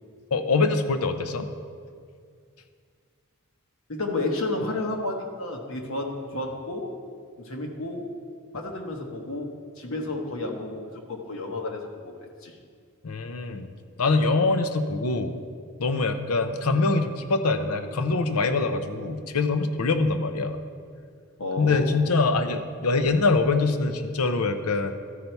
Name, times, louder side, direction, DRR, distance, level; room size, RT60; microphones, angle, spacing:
voice 1, 0.3-1.5 13.0-13.7 14.0-15.4 15.8-20.6 21.6-24.9, left 3 dB, 90° left, 9 dB, 0.6 m, -24 dB
voice 2, 3.9-6.9 7.4-8.1 8.5-12.1 12.4-12.5 21.4-22.0, left 2 dB, 70° left, 2 dB, 1.1 m, -31 dB
13.0 x 5.4 x 4.5 m, 2.2 s
head